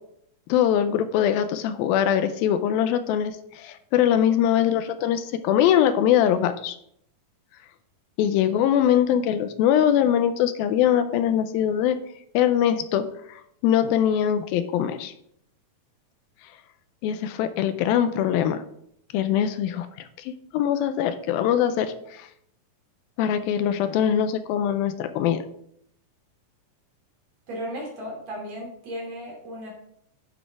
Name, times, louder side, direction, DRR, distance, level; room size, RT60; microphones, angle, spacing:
voice 1, 0.5-6.8 8.2-12.0 12.3-15.1 17.0-18.6 19.1-19.9 20.3-22.3 23.2-25.4, left 10 dB, 85° left, 10 dB, 2.4 m, -22 dB
voice 2, 27.5-29.7, equal, 50° right, -2 dB, 3.8 m, -35 dB
9.1 x 6.1 x 4.9 m, 0.70 s
omnidirectional pair, 4.2 m